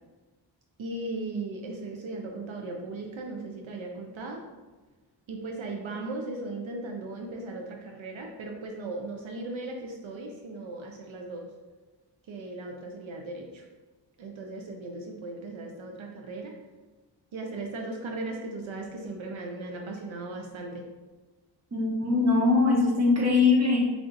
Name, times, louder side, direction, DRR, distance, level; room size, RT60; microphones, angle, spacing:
voice 1, 0.8-4.4 5.3-11.5 12.3-13.7 14.2-16.5 17.3-20.9, right 2 dB, 85° right, 1 dB, 0.6 m, -37 dB
voice 2, 21.7-23.8, left 3 dB, 35° right, -2 dB, 1.0 m, -22 dB
3.4 x 2.5 x 3.8 m, 1.2 s
cardioid pair, 50°, 46 cm